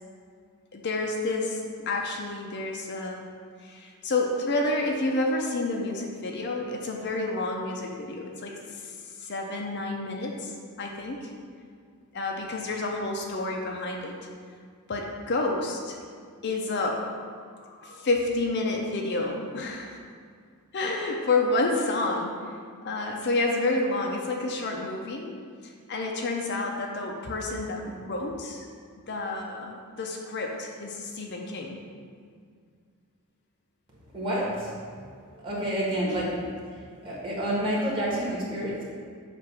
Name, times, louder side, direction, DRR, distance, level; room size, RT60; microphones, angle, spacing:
voice 1, 0.7-3.2 3.6-8.9 9.2-10.5 10.8-11.3 12.1-14.1 14.9-16.0 16.4-17.3 17.6-20.0 20.7-22.4 22.8-25.3 25.6-28.7 29.1-31.8 36.1-36.2, left 2 dB, 50° left, 0 dB, 0.6 m, -29 dB
voice 2, 34.1-34.8 35.4-36.4 36.7-38.8, right 1 dB, 25° right, -6 dB, 1.5 m, -29 dB
7.6 x 2.6 x 5.8 m, 2.1 s
head